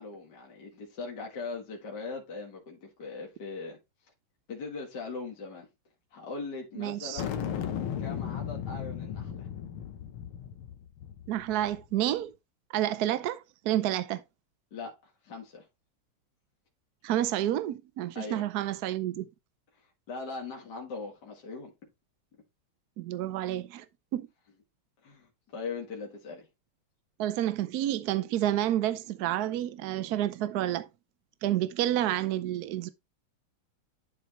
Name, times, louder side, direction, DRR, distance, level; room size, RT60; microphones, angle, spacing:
voice 1, 0.0-3.8 4.5-5.7 6.1-9.5 14.7-15.7 18.1-18.5 20.1-21.7 25.0-26.5, left 4 dB, 50° left, 2.3 m, -40 dB
voice 2, 6.8-7.2 11.3-12.3 12.7-14.2 17.0-19.3 23.0-23.8 24.1-24.2 27.2-30.9 31.4-32.9, right 12 dB, 80° right, 0.8 m, -29 dB
sound 1, 7.2-11.9, left 9 dB, 80° left, 1.9 m, -36 dB
11.0 x 4.5 x 3.0 m
omnidirectional pair, 2.3 m